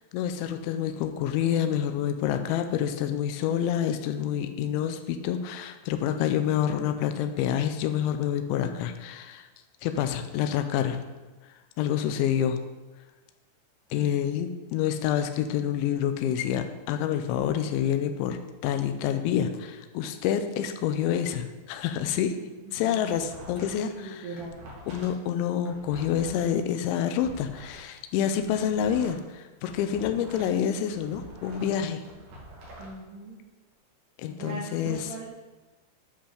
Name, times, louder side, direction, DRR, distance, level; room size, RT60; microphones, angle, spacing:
voice 1, 0.1-9.5 9.8-11.0 11.8-12.6 13.9-22.4 22.7-24.3 24.9-32.0 34.2-35.0, left 9 dB, 85° left, 7 dB, 2.7 m, -28 dB
voice 2, 22.4-22.7 23.8-24.6 32.8-33.4 34.4-35.3, right 3 dB, 85° right, -5 dB, 1.8 m, -39 dB
sound 1, 22.7-23.9 24.2-27.8 28.2-30.6 30.8-32.9, equal, 50° right, 2.7 m, -46 dB
10.0 x 5.7 x 5.0 m, 1.2 s
omnidirectional pair, 5.8 m